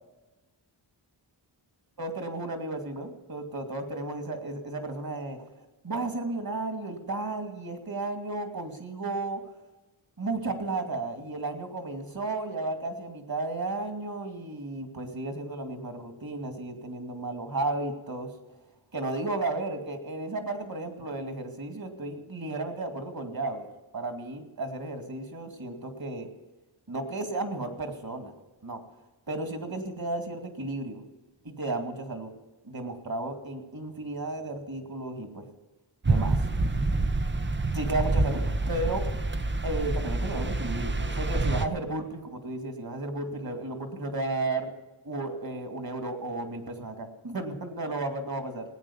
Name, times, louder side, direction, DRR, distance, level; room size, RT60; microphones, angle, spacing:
voice 1, 2.0-5.5 5.8-9.4 10.2-18.3 18.9-23.7 23.9-26.3 26.9-28.3 28.6-28.8 29.3-31.0 31.4-32.3 32.6-35.4 36.0-36.4 37.7-39.1 39.6-44.7 45.0-48.6, right 2 dB, 45° right, 6 dB, 2.5 m, -33 dB
sound 1, 36.0-41.7, right 2 dB, 25° right, 0.8 m, -27 dB
18.0 x 9.1 x 7.2 m, 1.1 s
wide cardioid pair, 65°, 47 cm